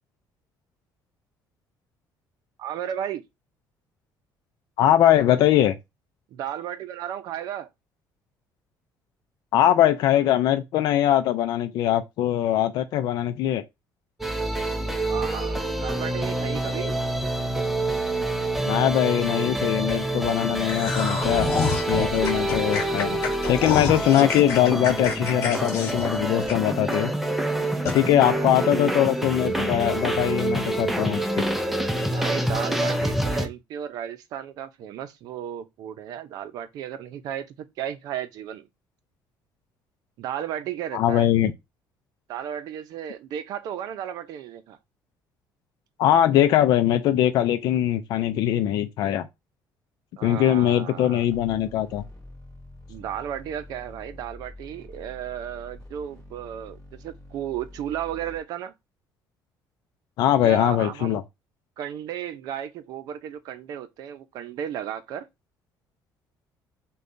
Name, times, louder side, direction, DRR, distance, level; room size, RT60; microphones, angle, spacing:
voice 1, 2.6-3.2 6.3-7.7 14.8-17.0 27.9-28.9 32.1-38.7 40.2-41.3 42.3-44.8 50.2-51.3 52.9-58.7 60.4-61.2 61.8-65.3, right 10 dB, 60° right, 0.6 m, -34 dB
voice 2, 4.8-5.7 9.5-13.6 18.6-21.5 21.9-23.2 23.5-27.1 27.9-31.4 40.9-41.5 46.0-49.3 50.2-52.0 60.2-61.2, left 12 dB, 65° left, 0.5 m, -21 dB
sound 1, 14.2-33.5, right 1 dB, 5° right, 0.4 m, -27 dB
sound 2, 20.7-26.9 27.3-27.4 27.9-28.0, left 5 dB, 40° left, 1.3 m, -29 dB
sound 3, 51.3-58.4, left 1 dB, 15° left, 2.3 m, -46 dB
6.6 x 2.3 x 2.6 m
cardioid pair, 175°, 7 cm